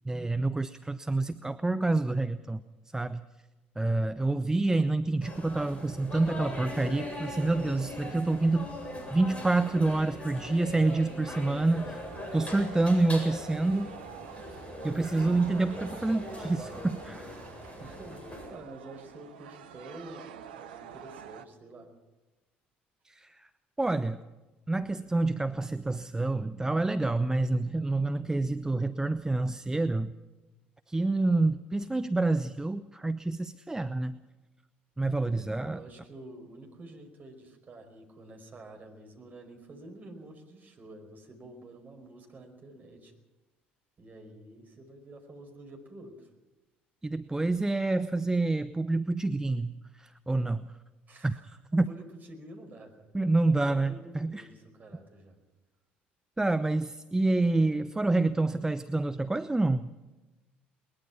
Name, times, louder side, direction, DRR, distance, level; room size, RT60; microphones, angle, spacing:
voice 1, 0.1-2.6 2.9-3.2 3.8-8.7 9.1-12.1 12.3-13.9 14.8-17.3 23.0-23.5 23.8-24.2 24.7-30.1 30.9-34.2 35.0-35.8 47.0-50.6 51.2-51.4 51.7-51.9 53.1-54.5 56.4-59.9, right 2 dB, 10° right, 11 dB, 0.8 m, -27 dB
sound 1, 5.2-18.5, left 1 dB, 20° left, 7.8 m, -41 dB
sound 2, 12.1-21.5, right 8 dB, 70° right, 1.0 m, -48 dB
voice 2, 15.7-16.1 17.8-21.9 35.3-43.1 44.0-46.3 51.1-53.1 53.5-55.4, right 2 dB, 30° right, 3 dB, 5.2 m, -48 dB
21.5 x 20.5 x 6.0 m, 1.1 s
figure-of-eight pair, 55°, 5 cm